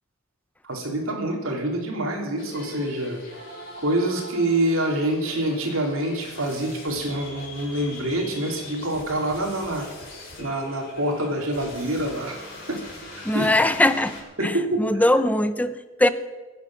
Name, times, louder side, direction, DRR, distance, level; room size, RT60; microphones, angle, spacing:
voice 1, 0.6-3.2 3.8-9.9 10.4-12.4 12.7-12.8 13.1-13.5 14.4-14.8, right 1 dB, 75° right, 1 dB, 3.4 m, -26 dB
sound 1, 2.4-14.2, left 1 dB, 50° left, 6.2 m, -41 dB
voice 2, 13.2-14.2 14.4-16.1, left 1 dB, 5° left, 12 dB, 0.7 m, -21 dB
22.0 x 9.3 x 6.3 m, 1.2 s
head